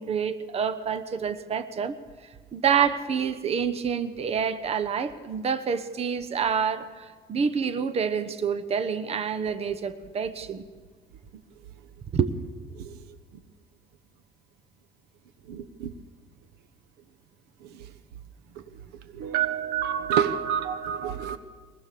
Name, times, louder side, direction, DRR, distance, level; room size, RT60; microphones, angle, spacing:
voice 1, 0.0-1.9 2.5-10.6 12.1-12.3, right 7 dB, 40° right, 1.1 m, -27 dB
voice 2, 15.5-15.9 19.2-21.4, right 9 dB, 90° right, 1.2 m, -27 dB
22.5 x 19.5 x 6.8 m
cardioid pair, 120°, 16 cm